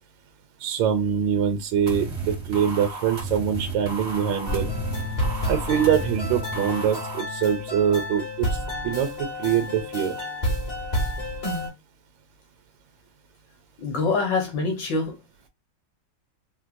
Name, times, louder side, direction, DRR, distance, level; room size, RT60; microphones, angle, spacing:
voice 1, 0.6-4.7 5.5-8.5 8.8-10.2, right 8 dB, 75° right, 1.2 m, -24 dB
sound 1, 1.9-7.2, right 3 dB, 50° right, 0.8 m, -33 dB
sound 2, 4.4-11.7, left 1 dB, 40° left, 0.6 m, -30 dB
voice 2, 13.8-15.1, left 4 dB, 65° left, 1.6 m, -25 dB
4.5 x 2.0 x 2.5 m
omnidirectional pair, 2.3 m